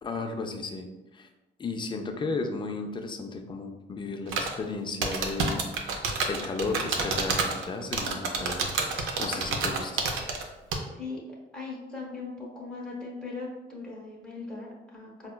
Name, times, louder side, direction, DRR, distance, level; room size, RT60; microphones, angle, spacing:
voice 1, 0.0-1.3 1.6-5.6 6.3-10.0, left 3 dB, 25° left, 5 dB, 0.4 m, -34 dB
sound 1, 4.3-4.6 5.0-7.6 7.9-10.4 10.7-10.8, right 4 dB, 80° right, 0.5 m, -28 dB
voice 2, 10.8-11.2 11.5-15.3, left 3 dB, 5° left, -4 dB, 0.7 m, -39 dB
4.2 x 2.1 x 2.2 m, 1.0 s
cardioid pair, 90°, 20 cm